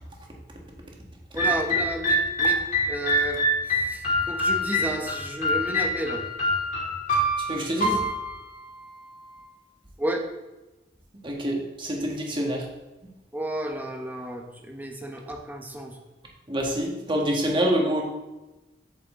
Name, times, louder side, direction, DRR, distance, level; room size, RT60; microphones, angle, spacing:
voice 1, 1.3-2.6 2.9-6.2 10.0-10.2 13.3-15.9, right 1 dB, 10° right, 2 dB, 0.9 m, -32 dB
sound 1, 1.4-9.4, equal, 45° left, 1.8 m, -26 dB
voice 2, 7.5-8.0 11.2-12.6 16.5-18.0, equal, 25° right, 0 dB, 1.5 m, -26 dB
8.2 x 6.4 x 3.7 m, 1.1 s
head